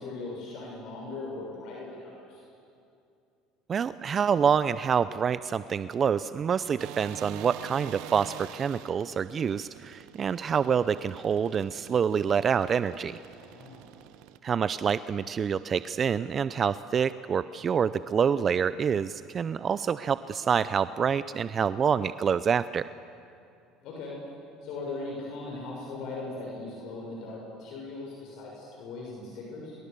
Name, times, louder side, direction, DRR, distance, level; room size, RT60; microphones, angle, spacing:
voice 1, 0.0-2.4 13.3-13.8 23.8-24.1 24.6-29.8, left 3 dB, 65° left, -3 dB, 6.7 m, -39 dB
voice 2, 3.7-13.2 14.4-22.8, right 7 dB, 35° right, 14 dB, 0.5 m, -27 dB
sound 1, 6.8-14.4, right 14 dB, 70° right, 0.9 m, -46 dB
26.0 x 23.0 x 6.9 m, 2.5 s
supercardioid pair, 90°, 0 cm